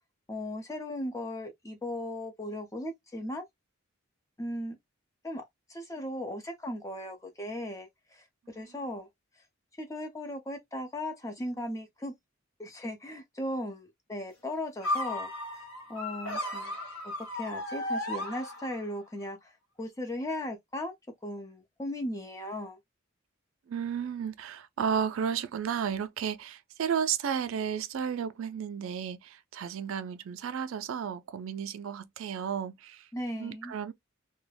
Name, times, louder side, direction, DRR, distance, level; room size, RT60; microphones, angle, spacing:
voice 1, 0.3-3.5 4.4-4.8 5.2-5.4 5.7-9.1 9.8-12.1 12.6-15.3 15.9-16.7 17.3-19.5 19.8-20.9 21.2-22.8 33.1-33.7, left 1 dB, 15° left, 0.6 m, -37 dB
sound 1, 14.8-19.0, left 1 dB, 75° left, 0.9 m, -35 dB
voice 2, 23.7-33.1 33.4-33.9, right 7 dB, 70° right, 0.3 m, -33 dB
2.3 x 2.1 x 3.2 m
head